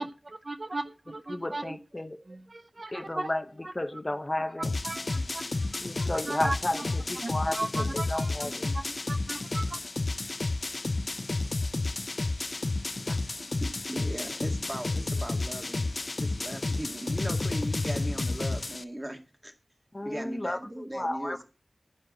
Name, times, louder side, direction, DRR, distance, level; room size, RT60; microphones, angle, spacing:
voice 1, 0.0-1.8 2.3-3.3 3.6-3.7 4.6-6.8 7.2-9.8, right 2 dB, 55° right, 0.6 m, -37 dB
voice 2, 1.3-2.2 2.9-3.5 3.7-4.7 5.8-8.7 19.9-21.4, left 1 dB, 35° left, 0.8 m, -33 dB
sound 1, 4.6-18.8, left 2 dB, 60° left, 0.5 m, -31 dB
voice 3, 13.4-19.5 20.0-21.4, right 1 dB, 25° right, 2.0 m, -38 dB
9.4 x 4.5 x 7.7 m
wide cardioid pair, 45°, 0 cm